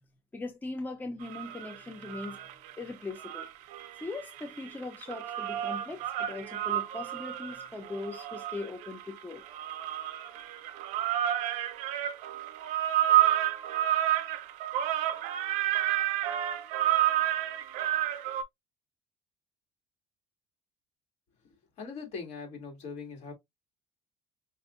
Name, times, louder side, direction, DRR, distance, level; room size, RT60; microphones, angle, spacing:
voice 1, 0.3-2.4 2.8-3.5 4.0-9.4, left 3 dB, 15° left, 0.7 m, -40 dB
sound 1, 1.2-2.7 3.1-18.4, right 12 dB, 80° right, 0.6 m, -30 dB
voice 2, 21.8-23.3, left 5 dB, 60° left, 2.4 m, -41 dB
5.3 x 2.6 x 2.5 m
cardioid pair, 125°, 13 cm